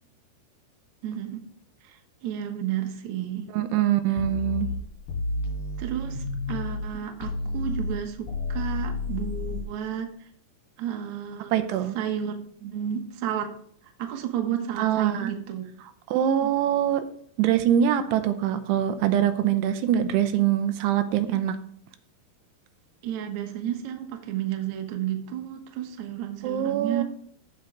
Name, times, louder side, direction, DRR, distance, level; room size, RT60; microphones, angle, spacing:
voice 1, 1.0-1.4 1.8-3.5 5.8-10.1 10.8-11.5 11.9-12.3 12.6-13.5 13.8-15.7 16.4-16.5 23.0-27.0, right 10 dB, 65° right, 4 dB, 2.0 m, -32 dB
voice 2, 3.5-4.7 11.5-12.0 14.8-15.3 16.1-17.0 17.4-21.6 26.4-27.0, right 10 dB, 85° right, 9 dB, 2.8 m, -23 dB
sound 1, 4.2-6.9 7.2-9.6, left 3 dB, 65° left, 4.9 m, -31 dB
15.0 x 5.2 x 4.6 m, 0.62 s
omnidirectional pair, 4.8 m